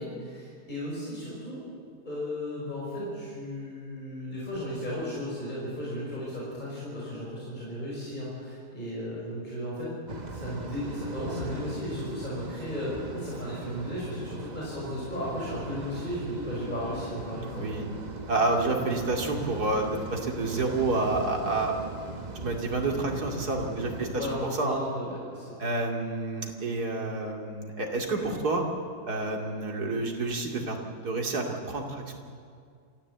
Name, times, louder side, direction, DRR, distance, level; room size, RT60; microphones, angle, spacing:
voice 1, 0.0-1.6 2.0-9.9 10.3-17.8 24.1-25.5, equal, 25° left, -6 dB, 5.6 m, -35 dB
sound 1, 10.1-24.5, right 2 dB, 30° right, 1.1 m, -39 dB
voice 2, 17.5-17.9 18.3-21.8 22.3-24.3 24.6-24.8 25.6-28.6 29.1-30.8 31.0-32.2, right 2 dB, 75° right, 1 dB, 3.0 m, -29 dB
27.0 x 14.5 x 8.1 m, 2.3 s
omnidirectional pair, 1.7 m